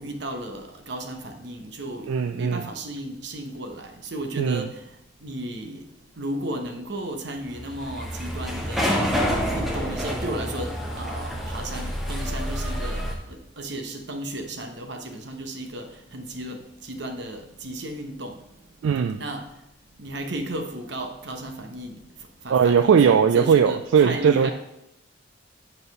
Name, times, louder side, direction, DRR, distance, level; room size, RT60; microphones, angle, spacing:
voice 1, 0.0-5.8 6.2-9.2 9.5-18.4 19.1-19.4 20.0-22.0 22.4-24.5, right 1 dB, 55° right, 1.0 m, -34 dB
voice 2, 2.1-2.6 4.4-4.6 18.8-19.2 22.5-24.5, right 7 dB, 75° right, 0.3 m, -19 dB
sound 1, 7.5-13.1, equal, ahead, 0.8 m, -28 dB
6.7 x 4.3 x 5.4 m
head